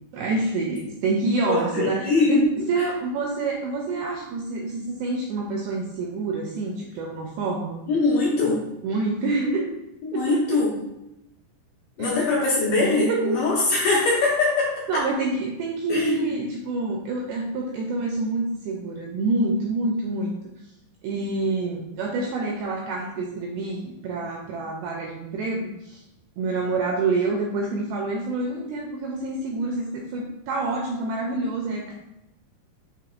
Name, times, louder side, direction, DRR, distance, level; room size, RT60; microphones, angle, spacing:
voice 1, 0.1-7.8 8.8-9.7 10.1-10.6 12.0-12.3 13.1-13.4 14.9-20.3 21.0-26.0 26.4-31.9, right 3 dB, 85° right, 0 dB, 2.2 m, -27 dB
voice 2, 1.5-2.4 2.8-2.9 7.9-8.6 10.0-10.7 12.0-14.7 15.9-16.3, left 3 dB, 70° left, -6 dB, 2.2 m, -22 dB
6.7 x 3.3 x 2.4 m, 0.90 s
omnidirectional pair, 4.8 m